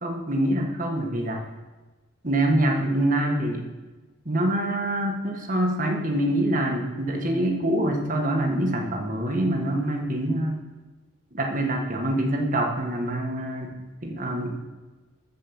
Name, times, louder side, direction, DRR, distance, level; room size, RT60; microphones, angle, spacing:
voice 1, 0.0-1.4 2.2-3.7 4.3-10.6 11.3-13.7 14.0-14.7, right 1 dB, 40° right, 2 dB, 1.7 m, -25 dB
14.0 x 5.5 x 7.1 m, 1.2 s
head